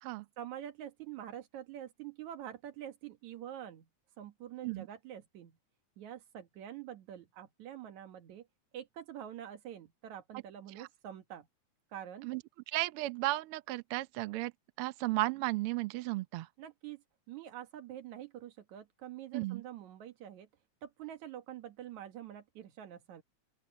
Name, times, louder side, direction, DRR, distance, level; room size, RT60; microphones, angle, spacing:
voice 1, 0.4-3.9 4.2-5.6 6.0-8.5 8.7-11.5 11.9-12.3 16.6-20.5 20.8-23.2, right 10 dB, 70° right, 2.9 m, -46 dB
voice 2, 12.7-14.5 14.8-16.5 19.3-19.6, right 19 dB, 85° right, 1.2 m, -34 dB
open air
omnidirectional pair, 3.6 m